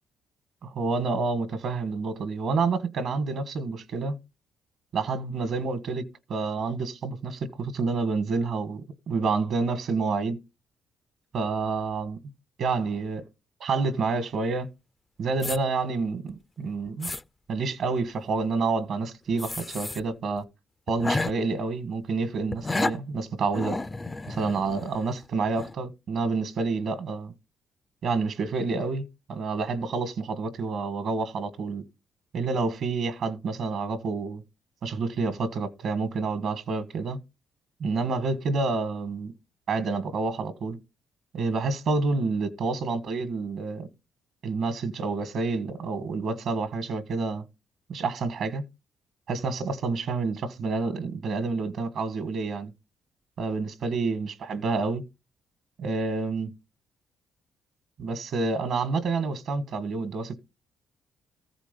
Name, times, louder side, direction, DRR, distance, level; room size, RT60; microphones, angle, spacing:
voice 1, 0.6-4.1 4.9-6.0 6.3-10.4 11.3-12.2 12.6-13.2 13.6-14.7 15.2-17.1 17.5-20.5 20.9-23.8 24.3-27.3 28.0-31.8 32.3-34.4 34.8-37.2 37.8-39.3 39.7-40.8 41.3-43.9 44.4-47.4 47.9-48.6 49.3-52.7 53.4-55.0 55.8-56.5 58.0-60.4, right 4 dB, 70° right, 1.4 m, -28 dB
sound 1, 15.4-15.6 16.3-16.4 16.9-17.2 19.4-20.0 20.4-20.5 20.9-21.3 22.5-23.0 23.5-25.2 25.6-25.7, left 2 dB, 20° left, 0.5 m, -31 dB
14.0 x 5.0 x 5.2 m
cardioid pair, 90°, 0 cm